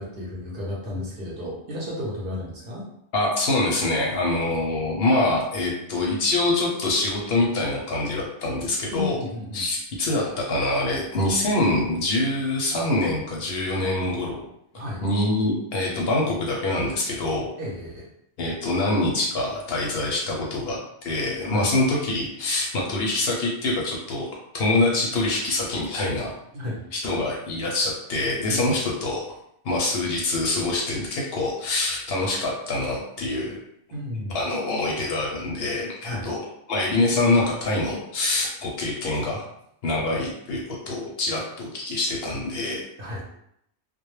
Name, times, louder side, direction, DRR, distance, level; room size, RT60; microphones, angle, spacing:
voice 1, 0.0-2.9 8.9-9.6 14.7-15.0 17.6-18.1 21.4-21.7 26.5-26.8 28.5-28.6 33.9-34.4 36.0-36.3 43.0-43.2, left 1 dB, 55° right, -4 dB, 0.8 m, -32 dB
voice 2, 3.1-9.2 9.5-14.5 15.0-17.5 18.4-24.3 24.5-26.3 26.9-29.2 29.6-33.6 34.3-36.4 36.7-39.4 39.8-42.8, left 2 dB, 65° left, -2 dB, 0.7 m, -25 dB
2.2 x 2.0 x 3.0 m, 0.75 s
omnidirectional pair, 1.2 m